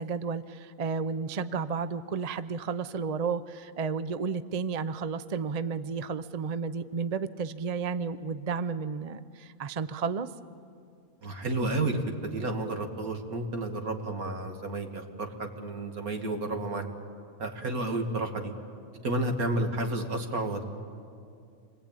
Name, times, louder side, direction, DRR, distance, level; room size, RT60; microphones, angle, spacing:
voice 1, 0.0-10.3, right 5 dB, 45° right, 13 dB, 0.5 m, -32 dB
voice 2, 11.2-16.8 17.4-18.5 19.0-20.7, right 2 dB, 75° right, 4 dB, 2.4 m, -31 dB
28.0 x 21.0 x 8.9 m, 2.4 s
omnidirectional pair, 1.5 m